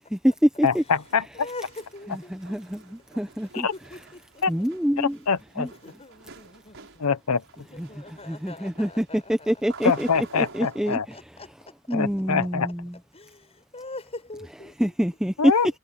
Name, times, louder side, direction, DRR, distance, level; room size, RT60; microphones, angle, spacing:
voice 1, 0.1-0.8 2.3-3.5 4.5-5.2 5.6-5.7 8.3-10.1 10.4-11.0 11.9-12.9 14.8-15.3, equal, 5° right, 0.7 m, -25 dB
voice 2, 0.6-1.3 3.6-3.7 4.4-4.5 5.0-5.7 7.0-7.4 9.8-11.0 11.9-12.7 15.4-15.8, left 6 dB, 85° left, 0.8 m, -24 dB
sound 1, 0.7-10.9, right 4 dB, 60° right, 6.0 m, -50 dB
voice 3, 1.3-2.6 3.5-4.4 5.0-6.9 7.5-9.6 10.4-11.5 11.9-12.0 13.1-13.5 13.7-14.9, left 2 dB, 30° left, 7.6 m, -43 dB
head